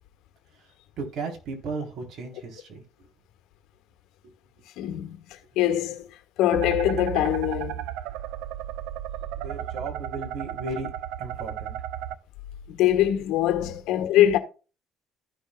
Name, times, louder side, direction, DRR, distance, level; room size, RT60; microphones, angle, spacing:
voice 1, 1.0-3.1 4.2-4.3 9.4-10.9 11.2-11.8, right 3 dB, 60° right, 3.7 m, -35 dB
voice 2, 4.8-6.0 6.4-7.8 12.7-14.4, left 12 dB, 80° left, 1.4 m, -23 dB
sound 1, 6.5-12.1, right 11 dB, 85° right, 0.6 m, -34 dB
15.0 x 6.4 x 2.4 m
cardioid pair, 100°, 0 cm